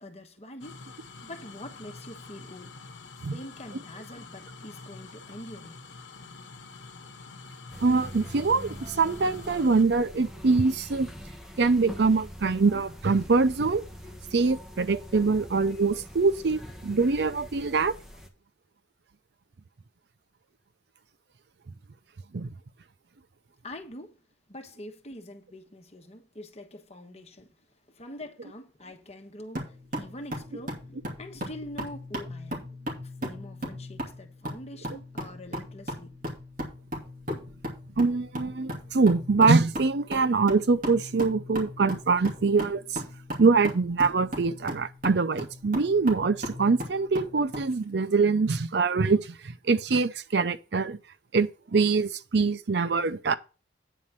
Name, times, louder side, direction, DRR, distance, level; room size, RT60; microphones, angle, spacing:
voice 1, 0.0-2.8 3.2-5.8 23.6-24.2 24.5-27.5 27.9-32.7 33.0-36.2, left 1 dB, 35° left, 1.3 m, -44 dB
sound 1, 0.6-9.8, left 4 dB, 80° left, 1.1 m, -46 dB
sound 2, 7.7-18.3, equal, 5° right, 1.2 m, -44 dB
voice 2, 7.8-11.1 11.6-13.8 14.3-17.9 22.3-22.5 38.0-43.0 43.4-49.4 49.6-51.0 51.3-53.3, right 4 dB, 65° right, 0.5 m, -24 dB
sound 3, 29.5-47.7, equal, 45° right, 2.8 m, -37 dB
9.3 x 4.2 x 7.4 m
head